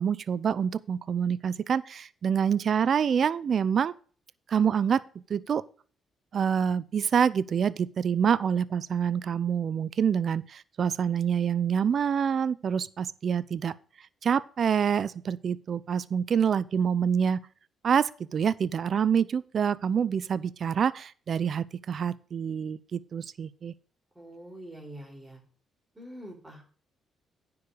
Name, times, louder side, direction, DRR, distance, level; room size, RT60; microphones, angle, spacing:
voice 1, 0.0-3.9 4.5-5.0 5.3-5.6 6.3-13.7 14.2-17.4 17.8-23.7, right 7 dB, 55° right, 0.5 m, -26 dB
voice 2, 24.2-25.4 26.0-26.6, right 1 dB, 15° right, 4.0 m, -44 dB
9.8 x 4.7 x 6.9 m
cardioid pair, 90°, 0 cm